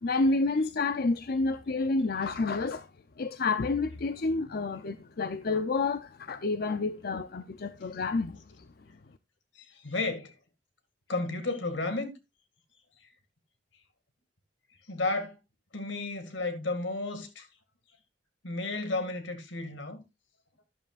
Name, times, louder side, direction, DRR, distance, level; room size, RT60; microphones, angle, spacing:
voice 1, 0.0-2.9 3.2-8.4, left 3 dB, 55° left, 0.5 m, -29 dB
voice 2, 9.6-10.3 11.1-12.1 14.9-15.4 15.7-17.5 18.4-20.0, left 2 dB, 80° left, 2.1 m, -32 dB
12.0 x 11.0 x 2.5 m
head